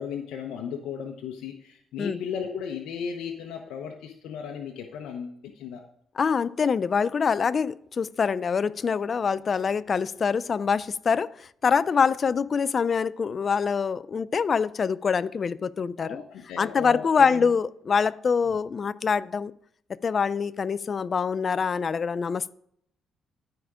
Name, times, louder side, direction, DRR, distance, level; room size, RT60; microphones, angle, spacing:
voice 1, 0.0-5.8 16.0-17.5 18.5-18.6, left 7 dB, 85° left, 0.9 m, -35 dB
voice 2, 6.2-16.2 16.6-19.5 20.0-22.5, left 6 dB, 45° left, 0.4 m, -25 dB
12.0 x 5.0 x 4.9 m
cardioid pair, 90°, 0 cm